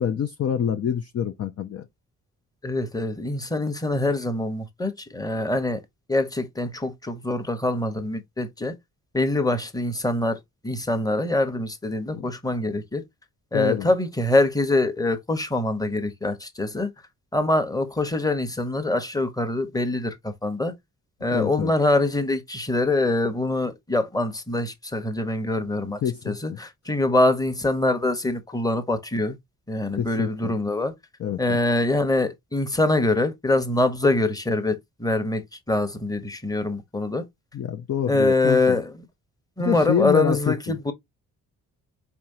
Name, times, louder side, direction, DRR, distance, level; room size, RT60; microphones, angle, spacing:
voice 1, 0.0-1.9 12.1-12.3 13.5-13.9 21.3-21.7 26.0-26.6 30.0-30.5 31.2-31.6 37.5-38.8 39.6-40.8, left 9 dB, 40° left, 0.5 m, -26 dB
voice 2, 2.6-5.8 6.1-8.7 9.1-10.4 10.6-13.0 13.5-16.9 17.3-20.7 21.2-26.0 26.2-29.4 29.7-30.9 31.4-37.2 38.1-39.1 39.6-40.9, left 2 dB, 10° left, 1.0 m, -24 dB
4.5 x 3.1 x 2.6 m
hypercardioid pair, 40°, 42 cm